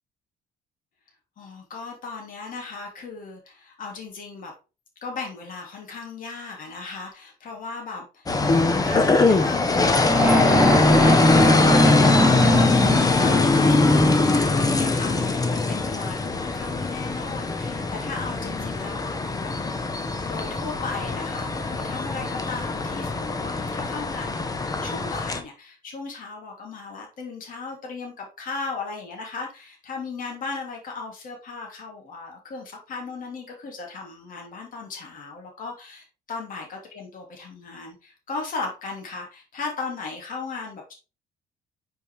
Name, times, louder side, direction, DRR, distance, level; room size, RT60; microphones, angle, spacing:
voice 1, 1.4-4.5 5.0-19.5 20.2-40.9, left 4 dB, 55° left, 0 dB, 2.9 m, -36 dB
sound 1, 8.3-25.4, left 3 dB, 20° left, 1.0 m, -22 dB
sound 2, 10.0-14.1, equal, 5° right, 2.1 m, -23 dB
6.3 x 5.3 x 3.4 m, 0.31 s
cardioid pair, 110°, 17 cm